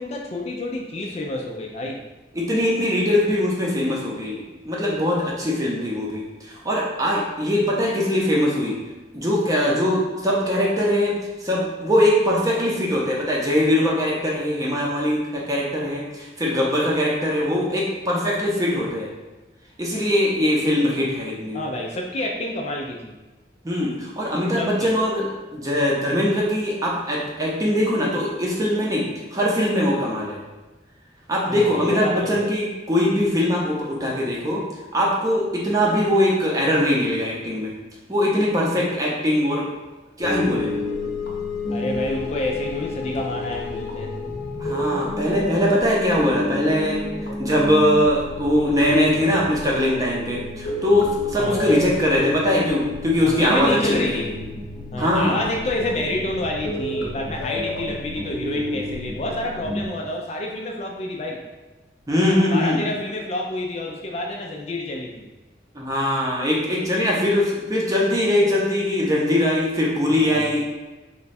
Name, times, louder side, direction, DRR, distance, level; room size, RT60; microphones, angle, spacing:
voice 1, 0.0-2.0 21.5-23.1 24.6-24.9 31.5-32.5 41.7-44.1 51.4-51.8 53.2-54.3 54.9-61.4 62.5-65.3 70.0-70.6, left 1 dB, 35° left, 0 dB, 0.3 m, -28 dB
voice 2, 2.3-8.8 9.1-19.1 19.8-21.6 23.6-30.4 31.3-34.6 34.9-37.7 38.1-39.7 40.2-40.8 44.6-47.0 47.4-54.2 55.0-55.4 62.1-62.9 65.7-70.6, left 1 dB, 20° right, -4 dB, 0.6 m, -21 dB
sound 1, 40.2-59.9, left 2 dB, 65° left, 0.7 m, -30 dB
3.1 x 2.2 x 4.1 m, 1.1 s
head